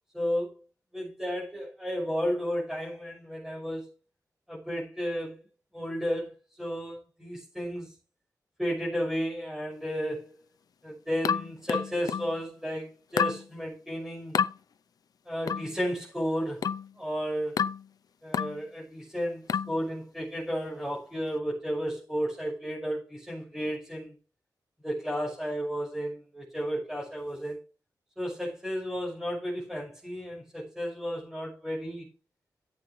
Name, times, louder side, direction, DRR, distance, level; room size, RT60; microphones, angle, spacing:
voice 1, 0.1-0.6 0.9-3.9 4.5-5.4 5.7-6.3 6.6-7.9 8.6-10.3 10.8-14.4 15.2-16.6 17.0-17.6 18.2-24.1 24.8-27.6 28.2-32.1, equal, 5° right, 6.1 m, -33 dB
sound 1, 11.2-12.4 13.2-13.4 14.3-14.6 15.5-15.7 16.6-16.9 17.6-17.9 18.3-18.6 19.5-19.8, left 7 dB, 65° left, 0.5 m, -29 dB
14.5 x 8.6 x 3.2 m
wide cardioid pair, 175°, 7 cm